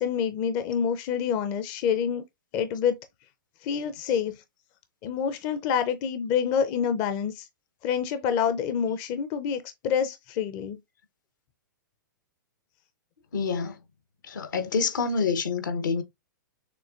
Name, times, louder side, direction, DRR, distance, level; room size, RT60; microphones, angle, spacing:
voice 1, 0.0-2.2 2.5-3.0 3.6-4.3 5.0-7.5 7.8-10.8, left 7 dB, 35° left, 0.6 m, -27 dB
voice 2, 13.3-13.8 14.3-16.0, left 5 dB, 65° left, 1.0 m, -27 dB
6.8 x 2.9 x 2.4 m
figure-of-eight pair, 110°, 11 cm